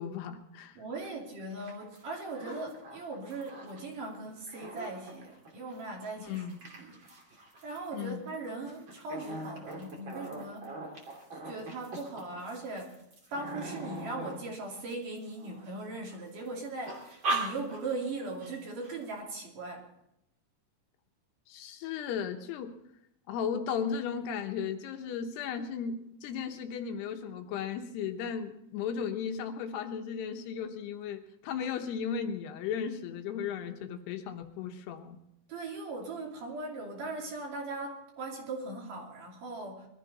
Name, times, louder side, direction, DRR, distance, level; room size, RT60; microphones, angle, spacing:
voice 1, 0.0-0.8 6.2-6.6 7.9-8.2 21.5-22.7 23.3-35.2, left 7 dB, 80° left, 5 dB, 3.1 m, -35 dB
voice 2, 0.8-6.4 6.8-7.0 7.6-10.7 11.3-13.0 13.3-19.9 35.5-39.9, right 2 dB, 55° right, -1 dB, 4.1 m, -39 dB
sound 1, 1.0-1.1 1.4-3.9 4.3-15.7 16.1-16.5 16.8-18.1 18.4-18.5 18.8-19.2, right 2 dB, 35° right, 3.0 m, -40 dB
21.5 x 13.5 x 4.1 m, 0.79 s
omnidirectional pair, 4.7 m